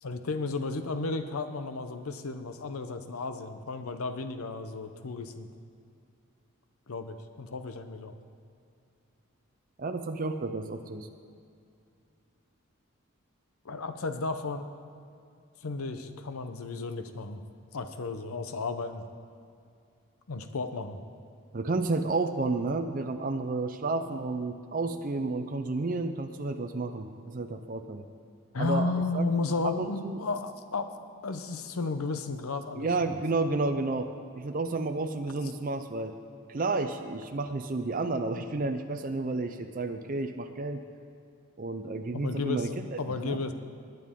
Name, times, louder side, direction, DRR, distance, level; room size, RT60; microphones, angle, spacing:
voice 1, 0.0-5.5 6.9-8.1 13.6-14.7 15.6-17.4 17.7-19.0 20.3-21.0 28.5-30.9 31.2-33.2 42.1-43.5, left 3 dB, 80° left, 8 dB, 0.7 m, -33 dB
voice 2, 9.8-11.1 21.5-28.0 28.6-29.2 29.6-30.2 32.8-36.1 36.5-40.8 41.6-43.0 43.2-43.4, right 3 dB, 40° right, 6 dB, 0.5 m, -31 dB
20.5 x 9.3 x 3.7 m, 2.5 s
head